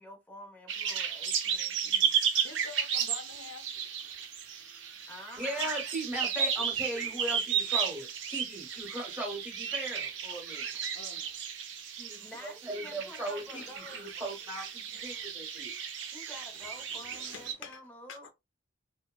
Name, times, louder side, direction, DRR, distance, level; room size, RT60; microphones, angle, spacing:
voice 1, 0.0-2.1 5.1-5.7 12.2-14.4 16.1-18.3, equal, 10° left, 0.7 m, -49 dB
sound 1, 0.7-17.5, right 7 dB, 65° right, 0.4 m, -34 dB
voice 2, 2.1-3.6 10.3-10.4 10.7-11.5 13.5-14.1 14.9-15.3 17.0-17.8 18.1-18.3, left 5 dB, 85° left, 0.6 m, -49 dB
voice 3, 5.4-10.7 12.0-15.7, right 1 dB, 10° right, 1.1 m, -38 dB
2.7 x 2.1 x 2.2 m
head